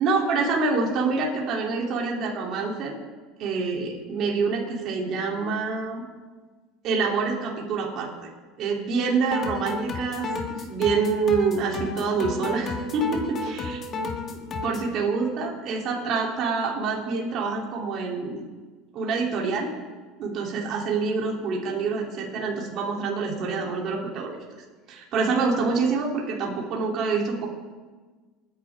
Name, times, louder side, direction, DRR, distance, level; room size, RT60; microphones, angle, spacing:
voice 1, 0.0-2.9 3.4-6.0 6.8-8.1 8.6-10.3 10.7-13.8 14.6-18.4 18.9-19.7 20.2-24.4 24.9-27.5, right 4 dB, 45° right, -2 dB, 3.1 m, -26 dB
sound 1, 9.3-14.9, left 3 dB, 30° left, 1.5 m, -32 dB
26.5 x 10.0 x 3.6 m, 1.4 s
supercardioid pair, 145°, 0 cm